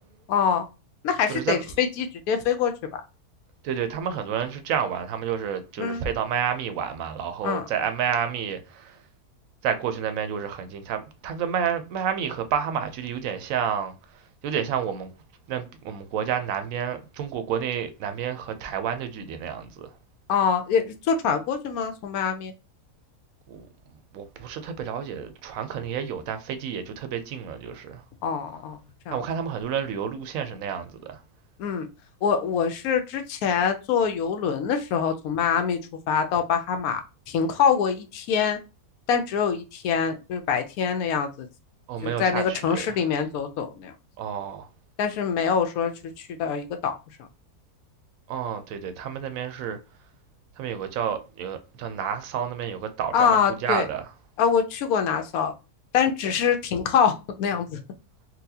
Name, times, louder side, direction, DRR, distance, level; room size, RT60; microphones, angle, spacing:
voice 1, 0.3-0.6 1.0-2.7 5.8-6.0 7.4-7.7 20.3-22.5 28.2-28.8 29.1-29.2 31.6-31.9 32.2-35.8 36.1-37.0 37.3-38.6 39.1-41.5 42.0-43.9 45.0-46.9 47.2-47.3 53.1-53.8 54.4-55.5 55.9-57.8, left 7 dB, 75° left, 1.0 m, -24 dB
voice 2, 1.3-1.6 3.6-9.0 9.6-15.1 15.5-19.9 23.5-28.0 29.1-31.2 41.9-43.0 44.2-44.7 48.3-49.8 50.6-54.1, right 8 dB, 70° right, 0.9 m, -30 dB
4.1 x 2.2 x 2.7 m
omnidirectional pair, 1.6 m